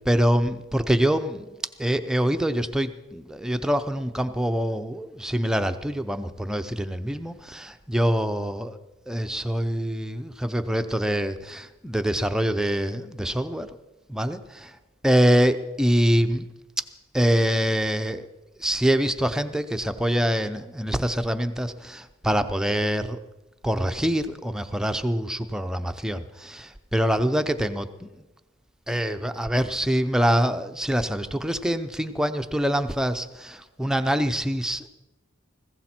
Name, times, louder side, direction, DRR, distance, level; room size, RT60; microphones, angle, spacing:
voice 1, 0.1-1.5 1.8-8.8 9.1-13.7 14.1-14.8 15.0-16.4 17.1-18.3 18.6-23.2 23.6-27.9 28.9-34.9, equal, 5° right, 8 dB, 0.6 m, -25 dB
19.0 x 16.0 x 4.4 m, 1.1 s
head